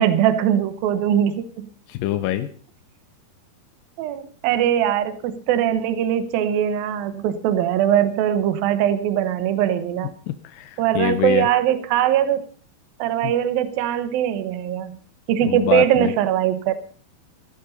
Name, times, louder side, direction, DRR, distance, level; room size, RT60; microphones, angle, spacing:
voice 1, 0.0-1.7 4.0-10.1 10.8-12.4 13.0-15.0 15.3-16.7, right 10 dB, 70° right, 11 dB, 2.7 m, -21 dB
voice 2, 1.9-2.5 10.3-11.5 13.2-13.3 15.4-16.1, left 13 dB, 75° left, 9 dB, 2.3 m, -25 dB
15.5 x 12.0 x 5.4 m, 0.44 s
omnidirectional pair, 4.6 m